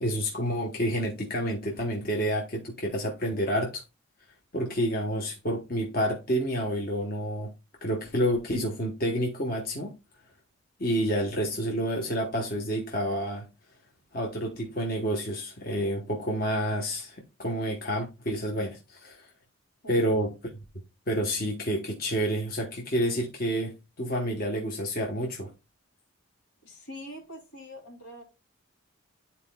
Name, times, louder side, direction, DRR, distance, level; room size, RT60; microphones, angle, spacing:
voice 1, 0.0-3.8 4.5-7.5 7.8-10.0 10.8-13.5 14.1-19.3 19.9-20.3 21.1-25.5, equal, 45° left, 1.1 m, -29 dB
voice 2, 26.6-28.2, equal, 85° left, 2.8 m, -44 dB
11.0 x 4.3 x 2.3 m
head